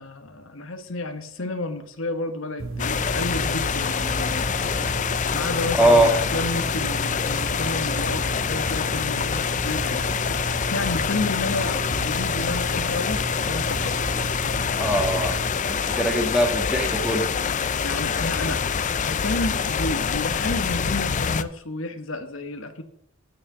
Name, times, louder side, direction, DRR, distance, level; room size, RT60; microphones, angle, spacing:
voice 1, 0.0-4.5 5.3-14.2 16.0-16.1 17.8-18.7 19.0-22.8, left 2 dB, 70° left, 7 dB, 1.2 m, -31 dB
sound 1, 2.6-15.5, right 2 dB, 70° right, 1.1 m, -33 dB
sound 2, 2.8-21.4, left 6 dB, 35° left, 0.5 m, -26 dB
voice 2, 5.8-6.1 14.8-15.4 15.6-17.3, right 1 dB, 5° right, 2 dB, 1.7 m, -21 dB
9.0 x 6.4 x 7.0 m, 0.67 s
head